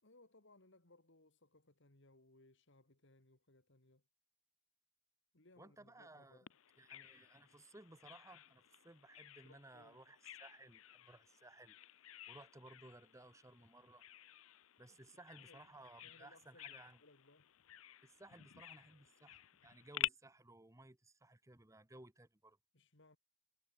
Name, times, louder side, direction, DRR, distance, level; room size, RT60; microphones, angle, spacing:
voice 1, 0.0-4.0 5.3-6.5 9.4-10.1 14.9-15.0 15.4-15.7 16.0-17.5 22.7-23.2, left 2 dB, 60° left, 3.1 m, -66 dB
voice 2, 5.6-6.4 6.8-11.8 12.3-14.1 14.8-17.0 18.0-22.6, right 2 dB, 15° right, 1.4 m, -59 dB
Bird vocalization bird call bird song, 6.5-20.1, left 13 dB, 85° left, 0.6 m, -50 dB
head